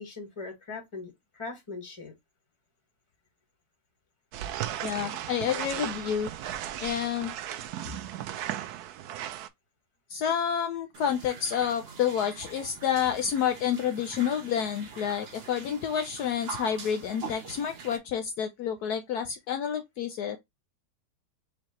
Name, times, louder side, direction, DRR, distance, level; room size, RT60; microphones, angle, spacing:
voice 1, 0.0-2.1, left 4 dB, 20° left, 1.4 m, -40 dB
sound 1, 4.3-9.5, right 11 dB, 70° right, 1.0 m, -36 dB
voice 2, 4.8-6.3 6.8-7.3 10.1-20.4, left 8 dB, 70° left, 1.1 m, -29 dB
sound 2, 10.9-18.0, right 5 dB, 45° right, 0.9 m, -44 dB
4.8 x 3.3 x 2.9 m
omnidirectional pair, 1.8 m